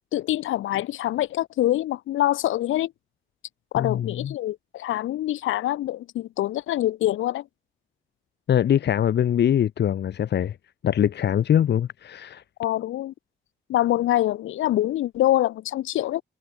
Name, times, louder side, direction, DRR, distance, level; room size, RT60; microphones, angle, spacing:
voice 1, 0.1-2.9 3.7-7.5 12.6-13.1 13.7-16.2, left 14 dB, 85° left, 4.4 m, -25 dB
voice 2, 3.7-4.3 8.5-10.5 10.8-12.4, left 10 dB, 60° left, 1.7 m, -22 dB
cardioid pair, 90°, 20 cm